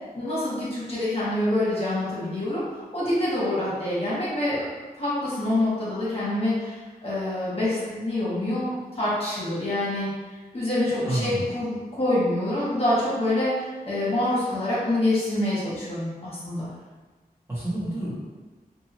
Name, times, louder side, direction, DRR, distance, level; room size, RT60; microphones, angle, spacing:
voice 1, 0.1-4.6 5.0-10.1 10.5-16.7, left 1 dB, 40° left, -9 dB, 1.2 m, -26 dB
voice 2, 11.0-11.5 17.5-18.1, right 1 dB, 15° right, -10 dB, 1.1 m, -29 dB
2.6 x 2.6 x 2.9 m, 1.3 s
wide cardioid pair, 85°, 16 cm